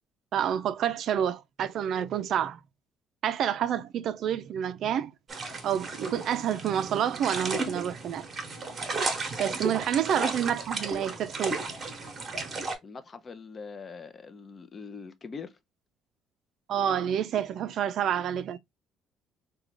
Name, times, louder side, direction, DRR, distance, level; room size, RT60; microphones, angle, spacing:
voice 1, 0.3-2.6 3.2-5.1 5.6-8.3 9.4-11.6 16.7-18.6, right 9 dB, 60° right, 0.4 m, -28 dB
sound 1, 5.3-12.7, right 3 dB, 30° right, 1.0 m, -34 dB
voice 2, 9.5-9.8 12.8-15.6, left 5 dB, 30° left, 0.5 m, -43 dB
3.7 x 2.2 x 3.0 m
cardioid pair, 125°, 0 cm